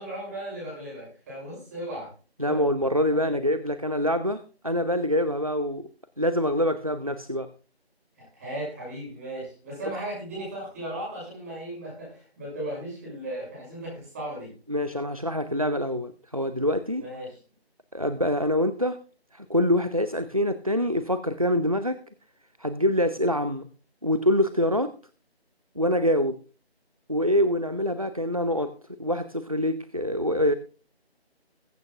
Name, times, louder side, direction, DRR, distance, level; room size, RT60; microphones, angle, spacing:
voice 1, 0.0-2.1 2.5-2.6 3.2-3.4 8.2-14.5 17.0-17.4, right 1 dB, 15° right, -4 dB, 5.9 m, -36 dB
voice 2, 2.4-5.9 6.2-7.5 14.7-17.1 17.9-19.0 19.3-22.0 22.6-23.7 24.0-24.9 25.8-26.4 27.1-28.7 29.0-30.5, equal, 35° right, 12 dB, 0.4 m, -25 dB
21.5 x 8.5 x 2.4 m, 0.37 s
figure-of-eight pair, 165°, 32 cm